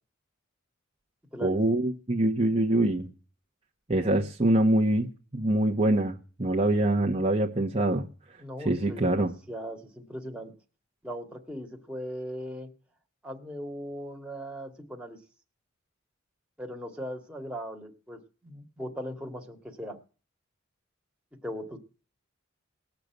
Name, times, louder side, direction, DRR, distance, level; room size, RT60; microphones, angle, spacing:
voice 1, 1.4-3.1 3.9-8.1 8.6-9.3, right 1 dB, 30° right, 0 dB, 1.1 m, -24 dB
voice 2, 8.4-10.5 11.0-12.7 13.2-15.2 16.6-20.0 21.4-21.8, equal, 5° right, 1 dB, 2.0 m, -39 dB
19.0 x 6.7 x 9.1 m, 0.39 s
head